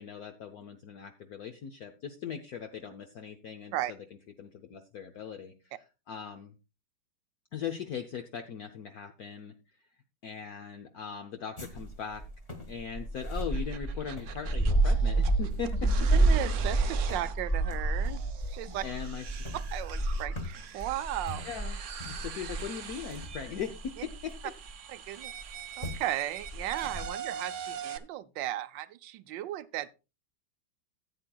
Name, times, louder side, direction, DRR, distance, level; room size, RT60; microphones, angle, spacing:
voice 1, 0.0-4.0 4.4-5.7 6.1-6.5 7.5-9.8 10.2-12.2 12.7-16.1 18.7-19.5 21.4-23.9 24.2-24.5, left 7 dB, 60° left, 1.2 m, -40 dB
sound 1, 11.6-24.7 25.4-25.5 25.8-26.1 26.4-27.1, right 2 dB, 20° left, 1.2 m, -30 dB
sound 2, 13.5-28.0, right 8 dB, 60° right, 0.8 m, -43 dB
voice 2, 16.1-18.2 18.5-18.8 19.5-21.5 24.9-25.3 25.8-29.9, right 13 dB, 75° right, 1.3 m, -36 dB
15.0 x 8.7 x 2.3 m
omnidirectional pair, 2.0 m